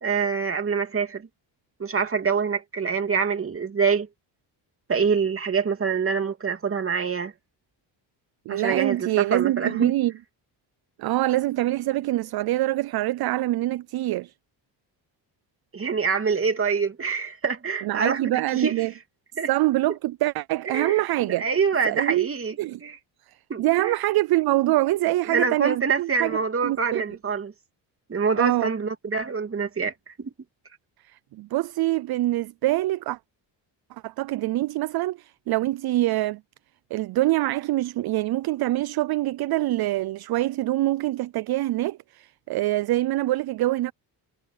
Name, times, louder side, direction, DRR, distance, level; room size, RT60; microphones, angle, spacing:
voice 1, 0.0-1.3 1.8-4.1 4.9-7.3 8.5-9.9 15.7-18.9 19.4-19.5 20.7-21.0 21.4-23.0 23.5-24.0 25.3-27.5 28.1-30.3, right 5 dB, 30° right, 2.8 m, -25 dB
voice 2, 8.5-10.1 11.0-14.3 17.8-18.9 19.5-21.5 21.8-22.3 22.6-22.8 23.3-26.4 26.6-27.0 28.4-28.7 31.3-33.2 34.0-36.4 36.9-43.9, right 16 dB, 60° right, 0.5 m, -25 dB
cardioid pair, 115°, 43 cm